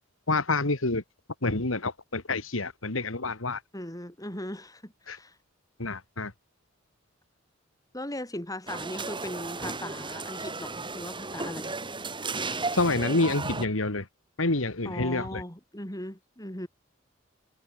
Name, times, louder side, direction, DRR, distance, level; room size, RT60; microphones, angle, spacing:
voice 1, 0.3-1.0 1.4-3.6 5.1-5.2 5.8-6.3 12.7-14.1 14.4-15.4, left 2 dB, 80° left, 2.5 m, -27 dB
voice 2, 3.7-5.4 7.9-11.8 14.8-16.7, left 1 dB, 20° left, 7.3 m, -38 dB
sound 1, 8.7-13.7, right 3 dB, 25° right, 6.2 m, -34 dB
head